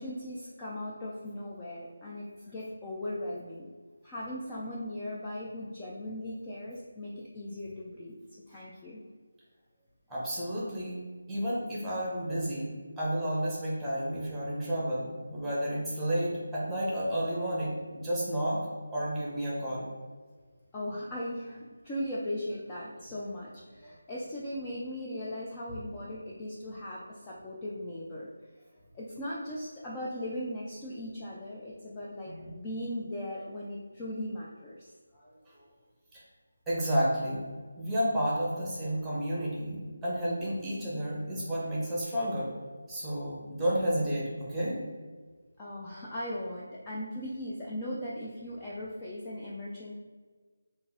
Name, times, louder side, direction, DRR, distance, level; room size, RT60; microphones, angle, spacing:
voice 1, 0.0-3.7 4.0-8.1 8.5-9.0 20.7-28.3 28.9-34.9 45.6-50.0, left 1 dB, 15° left, -6 dB, 0.4 m, -38 dB
voice 2, 10.1-11.0 11.3-18.6 18.9-19.9 32.3-32.5 35.1-35.6 36.7-37.5 37.8-42.5 42.9-44.8, equal, 5° right, -7 dB, 0.9 m, -31 dB
4.0 x 2.5 x 3.6 m, 1.5 s
figure-of-eight pair, 170°, 0 cm